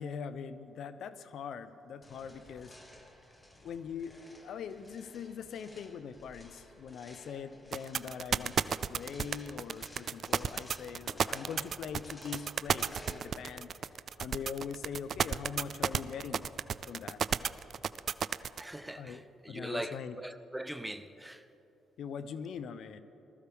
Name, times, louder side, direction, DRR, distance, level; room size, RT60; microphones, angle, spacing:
voice 1, 0.0-2.8 3.6-13.7 14.2-16.4 16.9-17.2 18.9-20.2 22.0-23.0, left 7 dB, 70° left, 0.6 m, -42 dB
sound 1, 2.0-13.9, left 1 dB, 20° left, 1.6 m, -55 dB
sound 2, 7.7-18.6, right 7 dB, 55° right, 0.3 m, -31 dB
voice 2, 18.6-21.4, right 1 dB, 5° right, 0.6 m, -41 dB
19.5 x 14.0 x 3.5 m
cardioid pair, 90°, 0 cm